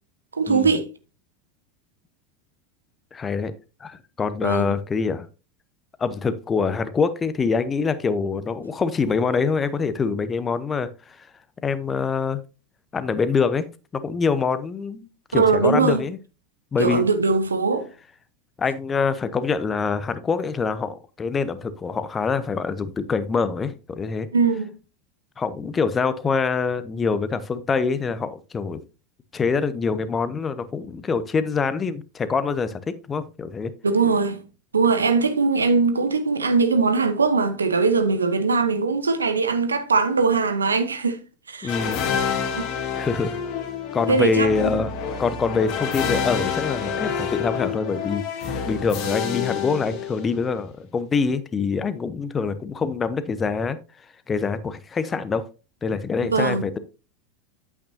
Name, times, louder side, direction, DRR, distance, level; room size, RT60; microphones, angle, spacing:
voice 1, 0.3-0.9 4.4-4.7 15.3-16.0 16.8-17.9 24.3-24.7 33.8-34.4 34.7-41.2 41.5-41.7 42.6-42.7 44.1-44.8 56.3-56.6, right 4 dB, 85° right, 0.9 m, -21 dB
voice 2, 3.1-3.5 3.8-5.3 6.0-11.2 11.6-12.4 12.9-13.7 13.9-16.2 16.7-17.0 18.6-24.3 25.4-28.8 29.3-32.8 33.1-33.7 41.6-42.0 42.9-43.4 43.9-44.9 45.2-53.8 54.3-55.5 55.8-56.8, left 5 dB, 25° left, 0.9 m, -25 dB
sound 1, 41.7-50.5, left 7 dB, 50° left, 2.0 m, -28 dB
8.6 x 8.5 x 2.8 m
figure-of-eight pair, 80°, 0 cm